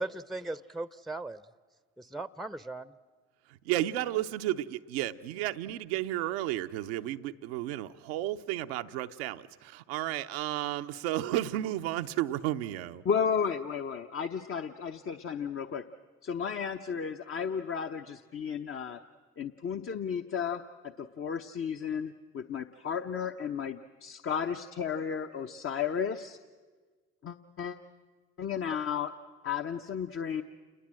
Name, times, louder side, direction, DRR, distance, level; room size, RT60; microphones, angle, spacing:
voice 1, 0.0-1.4 2.0-2.9, right 2 dB, ahead, 17 dB, 0.7 m, -38 dB
voice 2, 3.7-13.0, right 14 dB, 90° right, 8 dB, 0.7 m, -32 dB
voice 3, 13.0-15.8 16.2-19.0 19.4-20.6 21.0-26.4 27.2-27.8 28.4-29.1 29.4-30.4, left 7 dB, 45° left, 6 dB, 0.9 m, -33 dB
28.5 x 21.0 x 7.6 m, 1.4 s
hypercardioid pair, 60°, 30 cm